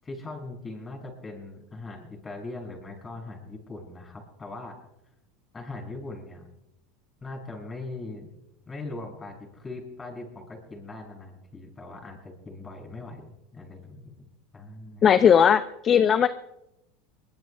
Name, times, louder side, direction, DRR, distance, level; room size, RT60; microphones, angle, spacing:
voice 1, 0.0-4.8 5.5-6.5 7.2-8.3 8.7-15.2, left 2 dB, 20° left, 2 dB, 6.6 m, -40 dB
voice 2, 15.0-16.3, left 8 dB, 35° left, 11 dB, 0.7 m, -18 dB
23.5 x 20.5 x 2.4 m, 0.87 s
hypercardioid pair, 100°, 0 cm